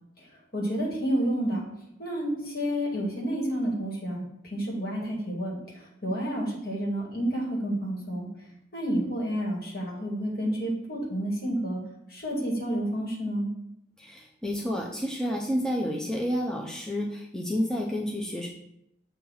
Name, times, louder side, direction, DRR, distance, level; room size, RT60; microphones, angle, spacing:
voice 1, 0.2-1.6 2.0-4.2 4.5-8.3 8.7-11.8 12.1-13.5, equal, 55° left, -3 dB, 2.0 m, -30 dB
voice 2, 14.0-18.5, equal, 5° left, -2 dB, 0.5 m, -30 dB
7.0 x 2.8 x 5.5 m, 0.80 s
head